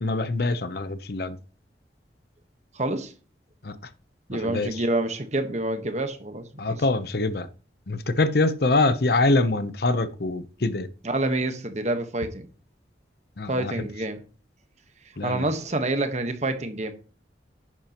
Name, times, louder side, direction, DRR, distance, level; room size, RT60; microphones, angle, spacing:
voice 1, 0.0-1.4 3.6-3.7 4.4-4.7 6.6-7.5 7.9-10.9 13.4-13.7 15.2-15.4, left 2 dB, 60° left, 0.8 m, -24 dB
voice 2, 2.7-3.1 4.3-6.8 11.0-12.4 13.5-14.2 15.2-16.9, right 2 dB, 40° right, 1.3 m, -27 dB
11.0 x 9.4 x 3.0 m
head